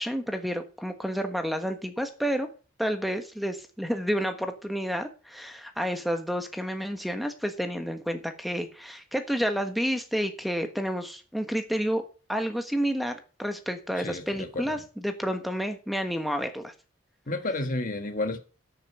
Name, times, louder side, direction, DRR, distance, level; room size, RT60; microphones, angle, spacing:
voice 1, 0.0-2.5 2.8-12.0 12.3-16.7, equal, ahead, 1.3 m, -30 dB
voice 2, 14.0-14.8 17.3-18.4, left 2 dB, 40° left, 1.6 m, -31 dB
12.0 x 6.7 x 5.5 m
head